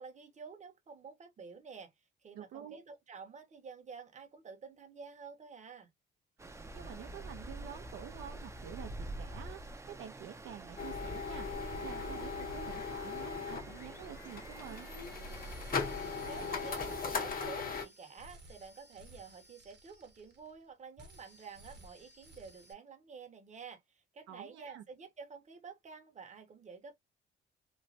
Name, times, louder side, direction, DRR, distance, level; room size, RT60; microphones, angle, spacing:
voice 1, 0.0-1.9 2.2-5.9 16.3-26.9, right 5 dB, 35° right, 0.9 m, -50 dB
voice 2, 2.3-2.8 6.4-14.9 24.3-24.8, right 10 dB, 75° right, 0.5 m, -49 dB
Stream, 6.4-17.1, right 1 dB, 15° right, 0.6 m, -47 dB
sound 1, 10.8-17.9, left 5 dB, 45° left, 1.1 m, -39 dB
sound 2, 15.3-20.7 21.0-22.7, equal, 60° right, 1.1 m, -56 dB
3.1 x 2.1 x 2.7 m
cardioid pair, 90°, 20 cm